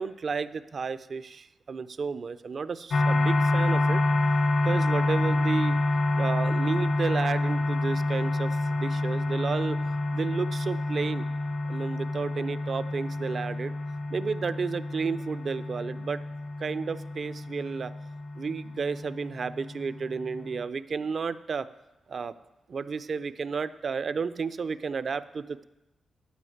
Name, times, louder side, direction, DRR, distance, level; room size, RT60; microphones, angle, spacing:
voice 1, 0.0-4.0 4.6-5.8 6.1-9.8 10.1-11.3 11.7-13.7 14.1-16.2 16.6-17.9 18.4-21.7 22.1-22.3 22.7-25.7, right 5 dB, 45° right, 14 dB, 0.4 m, -32 dB
sound 1, 2.9-20.6, left 2 dB, 50° left, 0.5 m, -28 dB
11.0 x 5.1 x 7.8 m, 0.94 s
wide cardioid pair, 140°, 0 cm